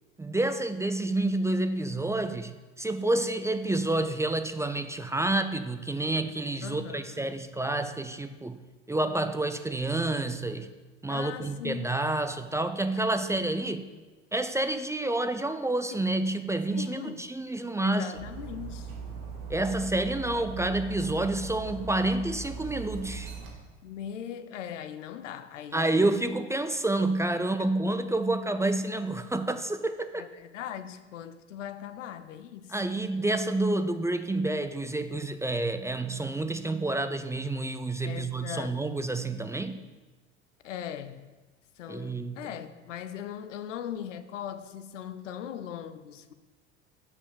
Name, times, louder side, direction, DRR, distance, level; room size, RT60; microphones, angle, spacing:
voice 1, 0.2-2.5 2.8-8.6 8.9-10.7 11.0-13.9 14.3-18.1 19.5-23.3 25.7-30.3 32.7-39.8 41.9-42.5, right 2 dB, 10° right, 0.4 m, -29 dB
voice 2, 6.6-7.2 11.1-11.9 12.9-13.1 15.9-16.0 16.7-17.4 17.8-18.9 23.8-26.1 30.1-32.8 38.0-38.8 40.6-41.3 41.8-46.3, left 9 dB, 85° left, 0.6 m, -40 dB
Dog, 18.1-23.5, right 5 dB, 65° right, 2.3 m, -39 dB
6.9 x 5.2 x 6.9 m
hypercardioid pair, 75°, 36 cm